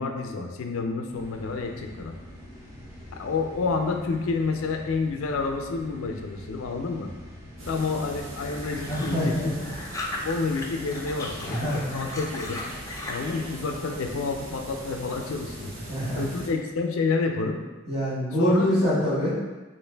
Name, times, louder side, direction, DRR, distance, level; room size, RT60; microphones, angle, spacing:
voice 1, 0.0-2.1 3.1-7.1 7.7-9.5 10.2-12.6 13.1-15.7 16.2-17.6 18.4-18.7, left 4 dB, 90° left, 4 dB, 0.4 m, -29 dB
sound 1, 1.1-9.6, equal, 15° right, 0.8 m, -45 dB
sound 2, 7.6-16.5, right 1 dB, 75° right, 0.7 m, -40 dB
sound 3, 8.4-10.6 10.9-13.4, left 2 dB, 15° left, 0.3 m, -37 dB
voice 2, 8.9-9.7 11.5-11.9 15.7-16.2 17.9-19.3, equal, 30° right, -9 dB, 1.4 m, -25 dB
3.1 x 2.5 x 3.3 m, 1.2 s
head